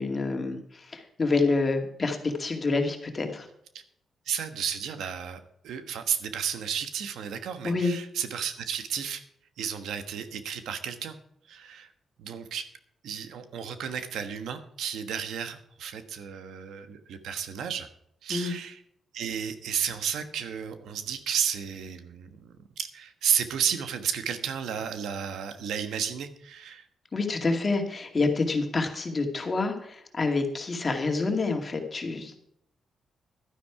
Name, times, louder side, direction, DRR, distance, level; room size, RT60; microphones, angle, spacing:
voice 1, 0.0-3.5 7.6-7.9 18.3-18.5 27.1-32.4, left 3 dB, 30° left, 4 dB, 2.2 m, -27 dB
voice 2, 4.3-9.2 9.6-11.2 11.5-11.9 12.2-12.6 13.0-17.9 18.2-18.8 19.1-26.8, right 8 dB, 90° right, 9 dB, 1.3 m, -32 dB
12.0 x 10.0 x 4.8 m, 0.71 s
cardioid pair, 115°, 0 cm